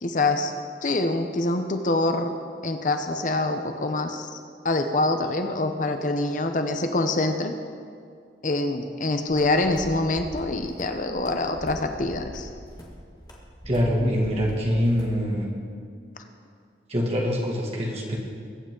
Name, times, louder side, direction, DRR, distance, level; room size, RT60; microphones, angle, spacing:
voice 1, 0.0-0.5 0.8-2.4 2.6-4.4 4.6-7.5 8.4-12.5, left 2 dB, 45° left, 6 dB, 0.7 m, -25 dB
sound 1, 9.3-15.2, equal, 20° left, 1.8 m, -42 dB
voice 2, 13.7-15.5 16.9-18.2, equal, 35° right, -2 dB, 2.2 m, -24 dB
22.0 x 9.0 x 3.8 m, 2.3 s
head